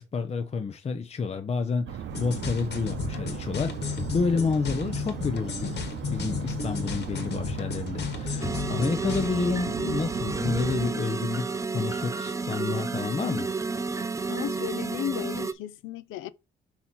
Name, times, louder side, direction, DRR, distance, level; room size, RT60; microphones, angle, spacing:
voice 1, 0.0-5.8 6.1-13.5, left 5 dB, 35° left, 0.6 m, -29 dB
sound 1, 1.9-10.9, right 9 dB, 70° right, 0.6 m, -37 dB
sound 2, 2.1-9.3, left 6 dB, 55° left, 1.5 m, -34 dB
sound 3, 8.4-15.5, right 4 dB, 15° right, 0.5 m, -31 dB
voice 2, 14.0-16.3, left 10 dB, 85° left, 0.6 m, -35 dB
6.3 x 2.9 x 5.6 m
cardioid pair, 90°, 20 cm